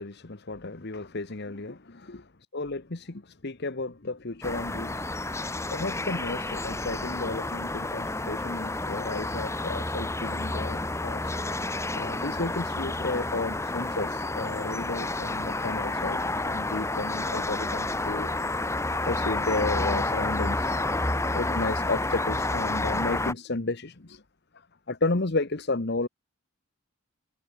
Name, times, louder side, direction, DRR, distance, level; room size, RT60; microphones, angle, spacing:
voice 1, 0.0-2.3 2.5-5.1 5.7-11.6 11.9-18.3 18.7-20.7 21.2-24.2 24.9-26.1, left 2 dB, 50° left, 1.2 m, -33 dB
sound 1, 4.4-23.3, left 2 dB, 15° left, 1.6 m, -30 dB
head